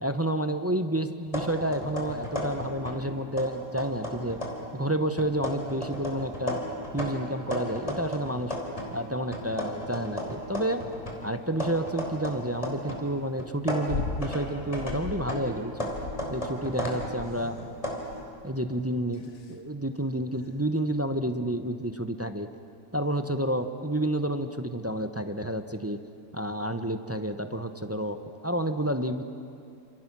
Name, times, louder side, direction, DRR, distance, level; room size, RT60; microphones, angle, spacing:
voice 1, 0.0-4.4 4.7-6.6 6.9-8.5 8.9-10.8 11.2-15.9 16.3-17.6 18.4-22.5 22.9-26.0 26.3-28.2 28.4-29.2, right 1 dB, 15° right, 8 dB, 0.5 m, -30 dB
sound 1, 1.3-3.1 3.4-4.7 5.2-9.0 9.3-13.1 13.4-18.0, equal, 20° left, 3.6 m, -35 dB
sound 2, 13.9-14.3 14.7-15.3 15.9-16.5 17.0-17.5 18.1-18.4 19.1-19.5 20.4-20.5, left 4 dB, 50° left, 1.6 m, -36 dB
29.0 x 27.5 x 6.1 m, 2.6 s
omnidirectional pair, 1.7 m